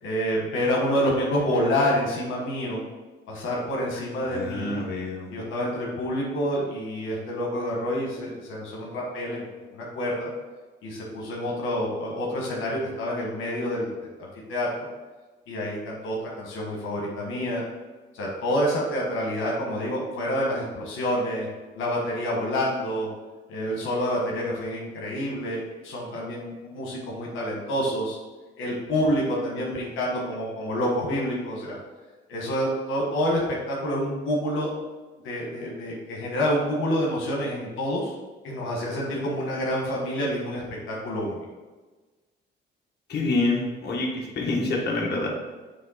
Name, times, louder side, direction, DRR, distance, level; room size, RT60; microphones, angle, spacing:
voice 1, 0.0-2.8 3.3-4.8 5.3-10.3 10.8-14.7 15.5-17.6 18.1-21.5 21.7-23.1 23.5-28.2 28.6-31.8 32.3-34.7 35.2-38.1 38.4-41.4, equal, 85° left, -2 dB, 1.4 m, -28 dB
voice 2, 4.3-5.3 43.1-45.3, left 2 dB, 55° left, -2 dB, 1.5 m, -27 dB
7.4 x 3.3 x 4.2 m, 1.3 s
cardioid pair, 90°, 20 cm